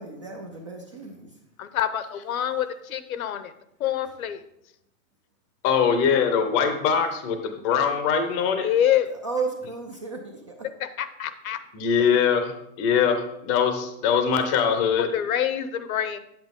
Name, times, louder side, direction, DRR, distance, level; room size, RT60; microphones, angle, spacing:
voice 1, 0.0-1.3 9.1-10.5, right 4 dB, 25° right, 2 dB, 0.3 m, -33 dB
voice 2, 1.6-3.5 3.8-4.4 8.6-9.1 10.8-11.6 15.0-16.2, left 10 dB, 75° left, 13 dB, 0.9 m, -26 dB
voice 3, 5.6-8.7 11.7-13.2 13.5-15.1, left 7 dB, 20° left, 7 dB, 0.6 m, -22 dB
8.6 x 8.0 x 3.6 m, 0.79 s
supercardioid pair, 165°, 43 cm